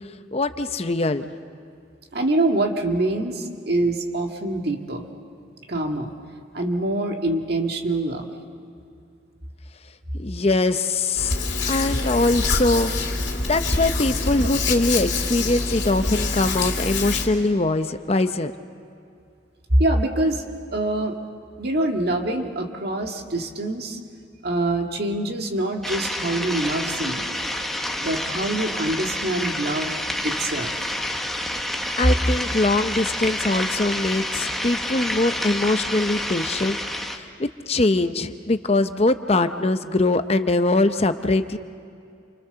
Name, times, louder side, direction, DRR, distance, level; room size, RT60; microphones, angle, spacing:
voice 1, 0.3-1.3 10.2-11.4 11.6-12.9 13.4-18.5 32.0-36.8 37.1-41.6, left 2 dB, 35° left, 9 dB, 0.7 m, -22 dB
voice 2, 2.1-5.1 5.7-6.1 6.5-8.3 19.7-20.4 20.7-21.2 21.6-24.0 24.4-27.4 28.0-29.9 30.2-30.8, right 1 dB, 55° right, 2 dB, 1.9 m, -25 dB
Hands, 11.1-17.3, left 3 dB, 65° left, 2.8 m, -25 dB
sound 1, 25.8-37.2, left 1 dB, ahead, 1.1 m, -28 dB
30.0 x 25.0 x 6.9 m, 2.4 s
head